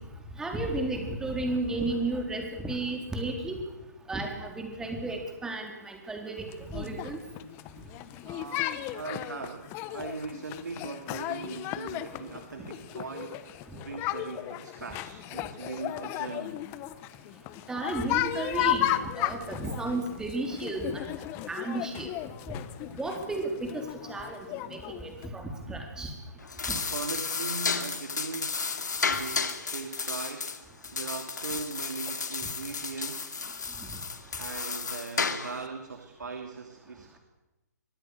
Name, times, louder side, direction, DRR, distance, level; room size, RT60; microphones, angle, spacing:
voice 1, 0.4-3.6 4.1-6.4 6.7-7.2 17.7-21.1 21.5-22.1 23.0-26.1, right 2 dB, 5° right, 2 dB, 4.0 m, -33 dB
sound 1, 6.5-25.3, left 14 dB, 25° left, 1.1 m, -35 dB
voice 2, 7.8-16.7 26.7-30.5 30.9-33.4 34.4-37.2, right 4 dB, 80° right, 6 dB, 2.8 m, -40 dB
sound 2, 26.4-35.7, left 5 dB, 80° left, 2.6 m, -33 dB
24.5 x 22.5 x 6.6 m, 1.0 s
hypercardioid pair, 140°, 9 cm